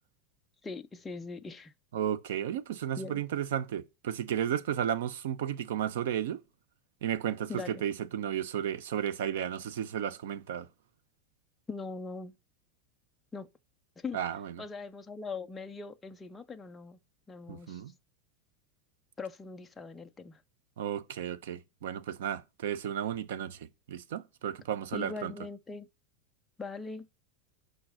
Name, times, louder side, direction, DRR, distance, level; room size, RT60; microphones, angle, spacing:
voice 1, 0.6-1.7 3.0-3.2 7.5-7.8 11.7-12.3 13.3-13.5 14.0-14.2 14.6-17.0 17.3-17.8 19.2-20.4 24.9-25.9 26.6-27.1, left 4 dB, 10° left, 0.4 m, -41 dB
voice 2, 1.9-6.4 7.0-10.7 14.1-14.5 17.5-17.9 20.8-23.6 23.9-25.3, right 9 dB, 75° right, 0.9 m, -33 dB
8.9 x 5.6 x 6.3 m
supercardioid pair, 175°, 0 cm